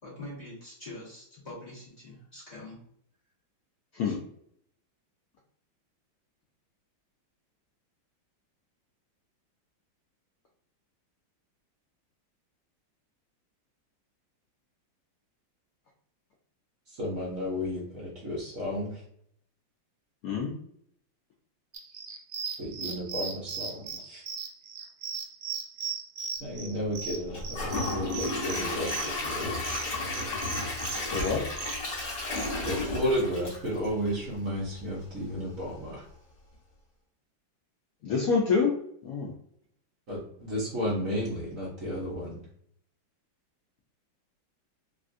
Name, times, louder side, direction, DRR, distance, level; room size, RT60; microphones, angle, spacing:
voice 1, 0.0-2.8 4.0-4.1, left 1 dB, 25° left, -8 dB, 1.3 m, -44 dB
voice 2, 16.9-19.0 22.6-24.2 26.4-29.6 32.6-36.0 40.1-42.4, equal, 55° right, -6 dB, 1.1 m, -33 dB
voice 3, 20.2-20.5 31.1-31.5 38.0-38.8 39.0-39.3, left 5 dB, 90° left, -1 dB, 0.7 m, -26 dB
sound 1, 21.7-32.5, right 6 dB, 75° right, 1.3 m, -37 dB
Gurgling / Toilet flush / Trickle dribble, 27.3-34.4 34.8-34.9 35.3-35.4, left 2 dB, 50° left, 1.4 m, -33 dB
3.6 x 2.4 x 2.4 m, 0.68 s
omnidirectional pair, 2.1 m